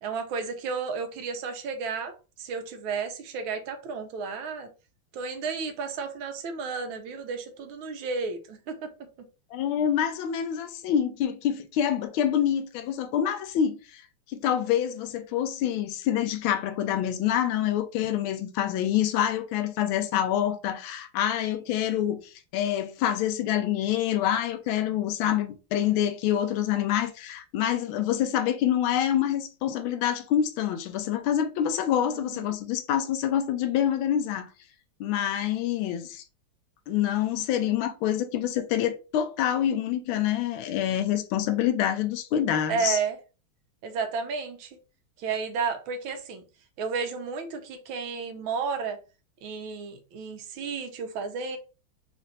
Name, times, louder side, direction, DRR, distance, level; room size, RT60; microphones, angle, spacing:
voice 1, 0.0-4.7 5.1-8.9 32.0-32.5 42.7-43.2 43.8-44.8 45.2-46.4 46.8-49.0 49.4-51.6, right 5 dB, 80° right, 1.5 m, -32 dB
voice 2, 9.5-14.0 14.3-34.5 35.0-36.2 36.9-43.0, left 10 dB, 80° left, 1.4 m, -26 dB
4.3 x 2.5 x 3.9 m
omnidirectional pair, 2.3 m